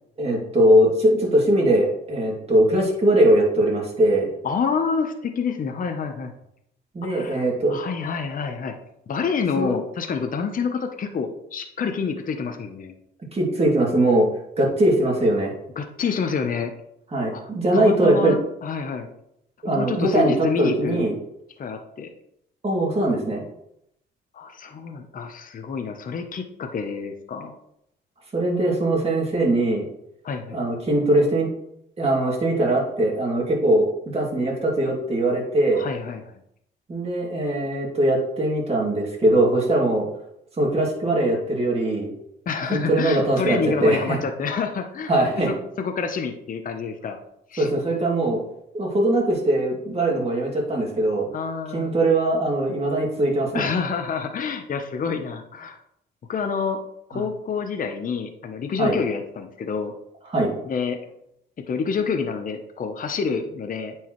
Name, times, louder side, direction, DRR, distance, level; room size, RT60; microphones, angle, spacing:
voice 1, 0.2-4.3 6.9-7.8 9.6-9.7 13.3-14.3 14.6-15.5 17.1-18.3 19.6-21.1 22.6-23.4 28.3-29.9 30.5-31.5 32.0-35.8 36.9-40.1 40.6-42.1 42.7-44.2 45.1-45.5 47.6-48.4 48.7-51.3 51.7-53.7 57.1-57.2 58.8-58.9 60.3-60.5, right 1 dB, 30° right, -2 dB, 2.5 m, -21 dB
voice 2, 4.4-6.3 7.1-8.7 9.1-12.9 15.8-16.7 17.3-17.4 17.7-19.1 19.6-21.1 21.6-22.1 24.3-27.5 30.2-30.6 35.7-36.3 42.5-45.1 45.5-47.2 47.5-47.7 51.3-52.0 53.5-55.8 56.3-56.8 57.1-59.9 60.6-61.0 61.7-63.9, left 5 dB, 45° left, 5 dB, 0.8 m, -28 dB
8.9 x 4.7 x 3.1 m, 0.76 s
cardioid pair, 90°, 20 cm